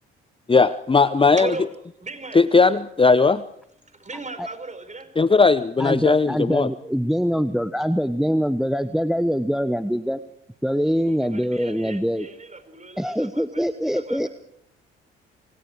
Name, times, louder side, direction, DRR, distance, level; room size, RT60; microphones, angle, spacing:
voice 1, 0.5-1.5 2.3-3.4 5.2-6.7, left 4 dB, 20° left, 15 dB, 0.8 m, -17 dB
voice 2, 1.4-1.7 2.0-2.4 4.0-5.1 11.1-14.3, right 3 dB, 25° right, 9 dB, 5.2 m, -37 dB
voice 3, 5.8-10.2 10.6-12.3 13.0-14.3, equal, ahead, 13 dB, 1.1 m, -23 dB
28.0 x 25.0 x 4.9 m, 0.70 s
hypercardioid pair, 50°, 30 cm